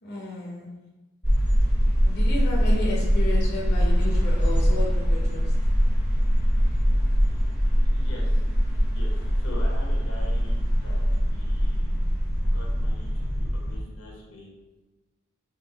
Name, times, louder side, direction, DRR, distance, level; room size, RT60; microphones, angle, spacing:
voice 1, 0.0-0.7 2.0-5.5, left 2 dB, 50° left, -3 dB, 0.7 m, -32 dB
sound 1, 1.2-13.8, equal, 5° right, 0.8 m, -22 dB
voice 2, 7.9-8.4 8.9-9.1 9.4-12.0 12.5-14.5, left 1 dB, 90° left, -2 dB, 1.0 m, -43 dB
3.7 x 2.4 x 3.9 m, 1.1 s
head